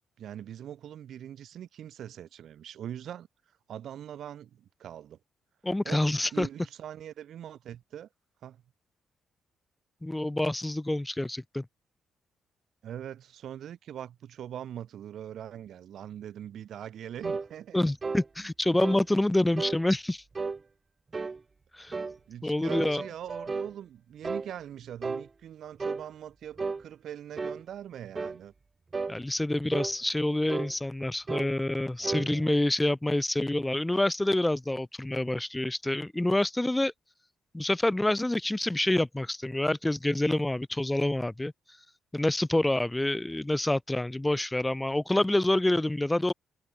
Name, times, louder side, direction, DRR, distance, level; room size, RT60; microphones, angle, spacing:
voice 1, 0.2-3.3 3.7-5.2 5.8-6.0 6.3-8.1 8.4-8.6 12.8-17.8 22.3-28.5 32.0-32.5, right 10 dB, 70° right, 1.2 m, -42 dB
voice 2, 5.6-6.5 10.0-11.7 17.7-20.2 21.7-22.0 22.4-23.0 29.1-36.9 37.5-41.5 42.1-46.3, left 1 dB, 10° left, 0.5 m, -27 dB
sound 1, 17.2-17.5 18.0-18.3 18.8-19.0 19.6-19.8 20.3-20.6 21.1-21.4 21.9-22.2 22.7-23.7 24.2-24.5 25.0-25.3 25.8-26.0 26.6-26.8 27.4-27.6 28.1-28.4 28.9-29.2 29.7-29.9 30.5-30.7 31.3-31.5 32.0-32.3, right 4 dB, 30° right, 0.6 m, -33 dB
cardioid pair, 90°, 0 cm